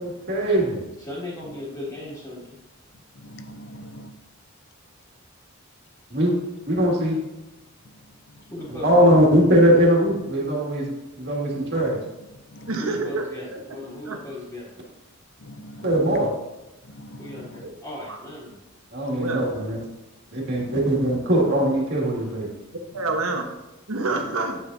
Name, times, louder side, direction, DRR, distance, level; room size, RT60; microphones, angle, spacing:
voice 1, 0.0-0.8 6.1-6.3 6.7-7.2 8.8-10.9 11.1-12.0 15.8-16.3 18.9-19.8 20.3-22.5, equal, 55° right, 2.1 m, -20 dB
voice 2, 1.0-2.6 8.5-9.1 12.8-14.7 17.2-18.6, left 1 dB, 15° left, 2.3 m, -36 dB
voice 3, 3.2-4.1 12.5-12.7 15.4-16.0 16.9-17.6 20.4-20.8, equal, 60° left, 0.6 m, -42 dB
voice 4, 12.7-13.3 13.5-13.6 14.1-14.2 17.6-17.7 18.1-18.2 19.2-19.6 22.9-23.5 23.9-24.6, right 3 dB, 85° right, 1.2 m, -27 dB
8.8 x 7.2 x 2.7 m
head